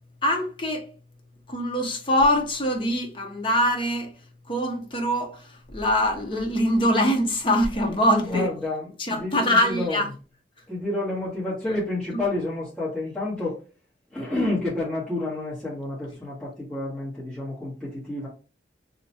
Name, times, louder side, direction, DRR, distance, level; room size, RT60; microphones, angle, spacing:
voice 1, 0.2-0.9 1.5-4.1 4.5-8.5 9.0-10.1, equal, 30° left, 0.7 m, -23 dB
voice 2, 8.2-10.0 10.7-13.6 14.1-18.3, left 2 dB, 5° left, 1.2 m, -29 dB
2.9 x 2.3 x 4.1 m
head